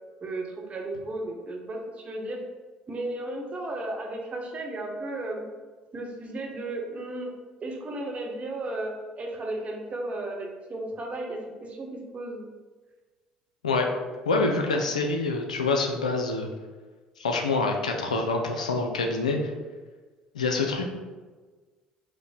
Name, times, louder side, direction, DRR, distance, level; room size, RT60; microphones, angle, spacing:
voice 1, 0.2-2.4 2.9-5.5 5.9-7.3 7.6-12.4, right 2 dB, 35° right, 1 dB, 0.9 m, -34 dB
voice 2, 14.3-16.5 17.2-19.4 20.3-20.9, left 3 dB, 85° left, 3 dB, 0.4 m, -26 dB
4.8 x 2.0 x 4.1 m, 1.3 s
figure-of-eight pair, 55°, 4 cm